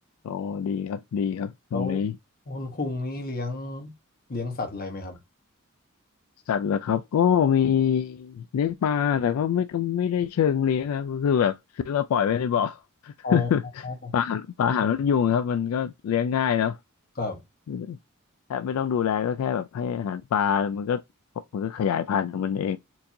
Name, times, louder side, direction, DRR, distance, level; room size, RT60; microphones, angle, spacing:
voice 1, 0.2-2.1 6.5-11.6 11.8-13.6 14.1-16.8 17.7-18.0 18.5-21.0 21.5-22.8, left 8 dB, 85° left, 0.3 m, -25 dB
voice 2, 1.7-2.0 2.5-3.9 4.3-5.2 13.2-13.5 13.8-14.1 17.2-17.4, left 3 dB, 45° left, 1.1 m, -31 dB
4.5 x 2.6 x 2.7 m
head